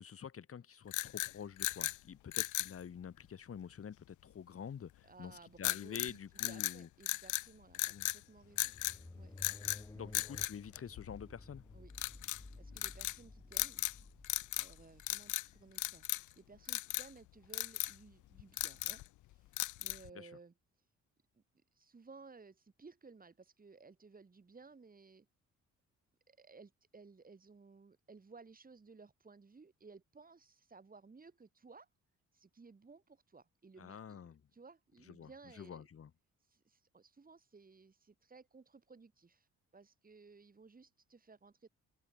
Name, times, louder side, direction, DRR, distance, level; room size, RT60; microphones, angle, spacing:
voice 1, 0.0-5.3 5.6-6.9 7.9-8.1 9.9-11.6 20.1-20.3 33.8-34.4 35.1-35.3 35.6-36.1, left 8 dB, 50° left, 2.9 m, -47 dB
sound 1, 0.9-2.0 2.3-2.7 5.6-6.1 6.4-7.5 7.7-8.2 8.6-9.0 9.4-9.8 10.1-11.3 11.9-12.4 12.8-13.2 13.5-14.0 14.2-14.7 15.0-15.5 15.8-16.3 16.7-17.1 17.5-17.9 18.4-19.1 19.6-20.1, left 17 dB, 75° left, 0.6 m, -37 dB
voice 2, 5.0-8.7 9.1-9.3 11.7-11.9 12.2-13.9 14.6-20.9 21.3-21.4 21.7-25.3 26.3-31.9 32.3-35.9 36.4-41.7, right 4 dB, 30° right, 5.8 m, -58 dB
sound 2, 8.1-16.3, left 2 dB, 15° left, 2.9 m, -54 dB
cardioid pair, 90°, 30 cm